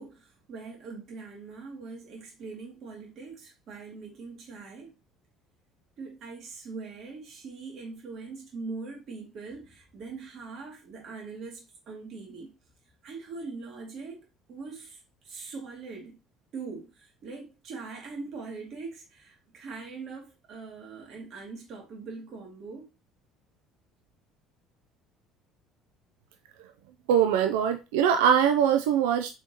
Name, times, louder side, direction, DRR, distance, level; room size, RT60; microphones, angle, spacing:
voice 1, 0.0-4.9 6.0-12.5 13.0-16.2 16.5-22.9, right 4 dB, 60° right, 2.2 m, -42 dB
voice 2, 27.1-29.3, right 8 dB, 90° right, 0.4 m, -22 dB
4.3 x 3.6 x 2.9 m
supercardioid pair, 85°, 0 cm